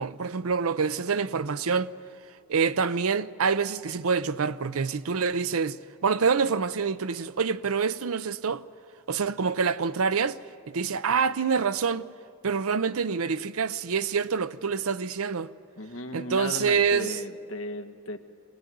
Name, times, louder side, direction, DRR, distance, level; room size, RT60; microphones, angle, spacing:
voice 1, 0.0-1.9 2.5-5.8 6.0-8.6 9.1-10.4 10.7-12.0 12.4-15.5 16.1-17.1, right 5 dB, 80° right, 0.6 m, -26 dB
voice 2, 15.8-18.2, left 1 dB, 65° left, 1.4 m, -36 dB
23.0 x 18.0 x 9.3 m
head